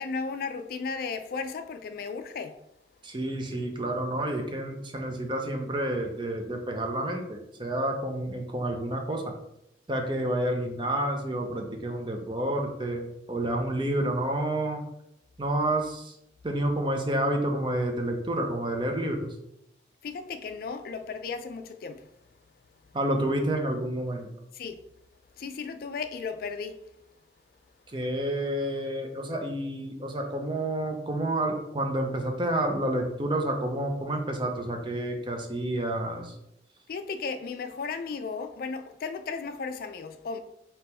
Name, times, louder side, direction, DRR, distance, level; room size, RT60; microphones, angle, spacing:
voice 1, 0.0-2.6 20.0-22.0 24.5-24.8 25.4-26.8 36.9-40.4, left 5 dB, 50° left, 0.3 m, -35 dB
voice 2, 3.0-9.3 9.9-14.8 15.4-16.2 16.4-19.2 22.9-24.3 27.9-36.3, right 1 dB, 25° right, 0.6 m, -29 dB
3.6 x 2.9 x 4.3 m
head